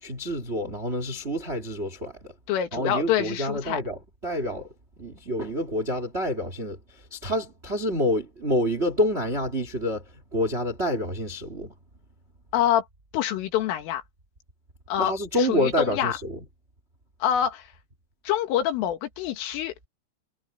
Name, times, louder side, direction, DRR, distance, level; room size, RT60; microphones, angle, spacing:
voice 1, 0.0-2.1 2.7-4.0 4.2-4.7 5.0-6.8 7.1-10.0 10.3-11.7 15.0-16.4, left 1 dB, 55° right, 0.7 m, -27 dB
voice 2, 2.5-3.8 12.5-12.8 13.1-14.0 14.9-16.2 17.2-17.7 18.3-19.7, left 10 dB, 90° left, 4.6 m, -26 dB
omnidirectional pair, 5.6 m